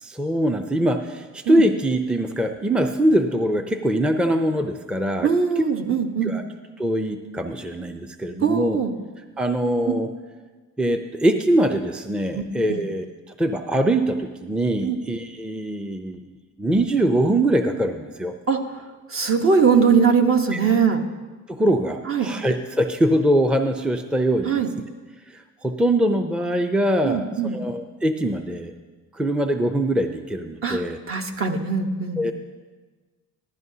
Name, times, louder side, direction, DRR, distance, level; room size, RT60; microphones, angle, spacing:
voice 1, 0.0-5.3 5.6-5.7 6.2-6.4 6.8-8.8 9.4-10.1 10.8-16.3 16.6-18.3 20.5-20.6 21.5-24.6 25.3-28.7 29.1-31.0 32.2-32.3, right 1 dB, 5° right, 6 dB, 0.5 m, -23 dB
voice 2, 5.2-6.3 8.4-8.9 9.9-10.0 12.3-12.4 12.7-12.8 14.8-15.0 18.5-18.6 19.1-21.0 22.1-22.3 24.4-24.7 27.0-27.6 30.6-32.2, right 6 dB, 45° right, 4 dB, 1.1 m, -21 dB
14.5 x 12.5 x 2.8 m, 1.4 s
cardioid pair, 90°, 30 cm